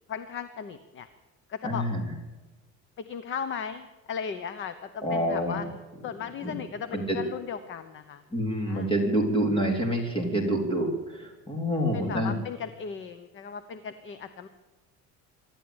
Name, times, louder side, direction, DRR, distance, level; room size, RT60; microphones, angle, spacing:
voice 1, 0.1-1.1 1.5-1.8 3.0-5.6 6.0-8.2 8.7-8.9 11.9-14.5, left 7 dB, 40° left, 11 dB, 1.0 m, -36 dB
voice 2, 1.6-2.1 5.0-5.6 6.4-6.6 6.9-7.2 8.3-12.4, equal, 15° left, 2 dB, 3.8 m, -27 dB
25.0 x 12.0 x 9.0 m, 1.2 s
cardioid pair, 155°, 31 cm